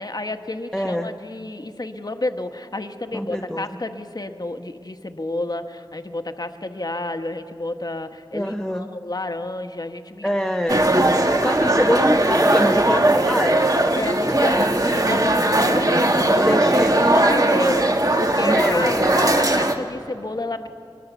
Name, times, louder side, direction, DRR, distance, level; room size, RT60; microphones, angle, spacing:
voice 1, 0.0-10.3 11.1-11.7 13.9-16.6 17.0-17.9 18.2-20.7, left 2 dB, 45° left, 7 dB, 1.2 m, -30 dB
voice 2, 0.7-1.1 3.1-3.7 8.3-8.9 10.2-11.1 11.4-13.7 14.3-14.7 16.4-17.2 18.4-19.3, equal, 5° left, 4 dB, 0.9 m, -25 dB
sound 1, 10.7-19.7, right 1 dB, 40° right, 1.8 m, -19 dB
23.0 x 21.5 x 7.0 m, 2.4 s
wide cardioid pair, 40°, 9 cm